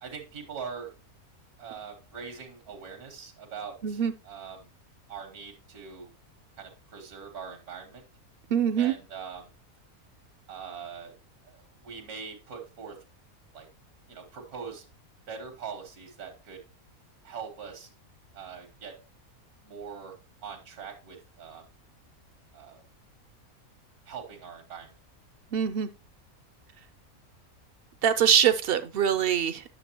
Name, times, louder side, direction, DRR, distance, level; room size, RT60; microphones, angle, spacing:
voice 1, 0.0-0.9 1.6-4.7 5.1-6.1 6.6-8.0 8.8-9.5 10.5-11.1 11.4-13.0 13.5-13.7 14.1-14.8 15.3-16.6 17.2-17.9 18.3-18.9 19.6-20.2 20.4-21.6 22.5-22.8 24.1-24.9, right 6 dB, 90° right, 1.7 m, -42 dB
voice 2, 8.5-9.0 25.5-25.9 28.0-29.6, right 8 dB, 70° right, 0.5 m, -23 dB
9.8 x 6.7 x 2.9 m
omnidirectional pair, 1.5 m